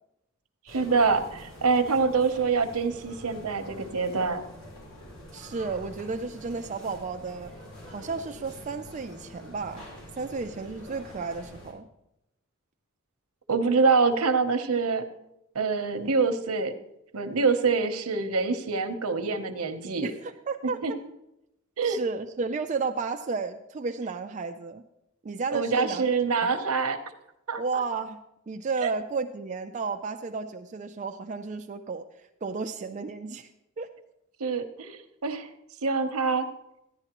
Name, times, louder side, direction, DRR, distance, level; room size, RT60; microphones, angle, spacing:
sound 1, 0.7-11.7, left 1 dB, 80° left, 5.1 m, -46 dB
voice 1, 0.7-4.4 13.5-15.0 15.5-16.7 17.1-20.1 20.8-20.9 21.8-22.0 25.5-27.0 27.5-27.6 28.8-28.9 34.4-35.5 35.8-36.5, right 4 dB, 85° right, 8 dB, 0.9 m, -25 dB
voice 2, 5.3-7.5 7.9-9.9 10.1-11.9 20.0-21.0 21.8-24.8 25.2-26.1 26.4-26.6 27.6-33.5 33.8-33.9, right 4 dB, 35° right, 6 dB, 0.4 m, -33 dB
14.5 x 10.5 x 3.0 m, 0.86 s
head